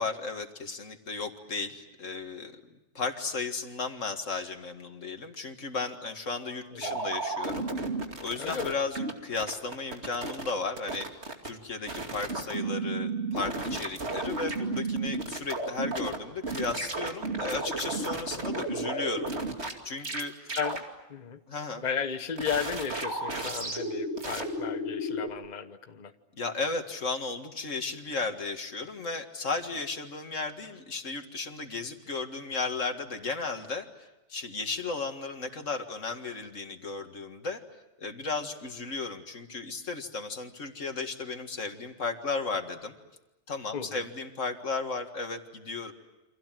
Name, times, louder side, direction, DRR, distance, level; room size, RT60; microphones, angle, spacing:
voice 1, 0.0-2.6 2.9-7.6 8.2-19.3 19.8-20.5 21.5-21.8 26.3-37.6 38.0-42.9 43.5-45.9, left 4 dB, 85° left, 6 dB, 2.3 m, -35 dB
voice 2, 6.7-7.0 8.4-8.8 20.5-20.8 21.1-21.4 21.8-26.1 43.7-44.1, left 7 dB, 35° left, 8 dB, 1.2 m, -34 dB
sound 1, 6.8-9.1 9.4-10.5 10.8-11.5 11.9-16.2 16.4-19.7 20.0-20.2 20.5-20.8 22.4-25.3, right 2 dB, 60° right, 2.8 m, -33 dB
29.0 x 26.0 x 7.6 m, 1.0 s
omnidirectional pair, 1.3 m